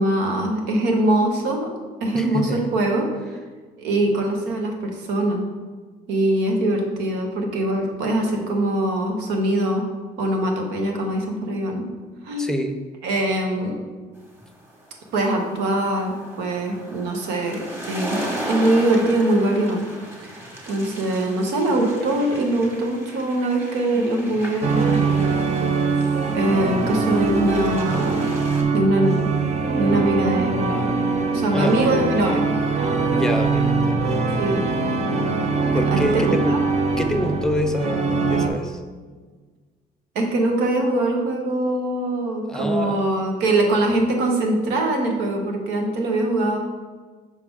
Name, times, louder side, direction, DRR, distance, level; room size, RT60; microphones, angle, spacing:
voice 1, 0.0-1.7 2.0-3.1 3.8-5.4 6.1-9.9 10.2-11.9 12.2-12.5 13.0-13.8 15.1-19.8 20.2-25.1 26.3-28.3 28.7-29.3 29.7-30.9 31.3-32.4 34.3-34.6 35.9-36.6 40.1-46.6, right 1 dB, 90° right, 2 dB, 1.1 m, -22 dB
voice 2, 2.1-2.6 12.4-12.8 31.5-31.8 33.1-34.1 35.7-36.6 37.0-38.8 42.5-43.1, equal, 5° left, 5 dB, 0.6 m, -26 dB
sound 1, 14.4-28.6, right 1 dB, 10° right, 1.3 m, -36 dB
sound 2, 24.6-38.5, right 4 dB, 40° right, 0.7 m, -22 dB
5.8 x 4.8 x 3.6 m, 1.4 s
cardioid pair, 110°, 17 cm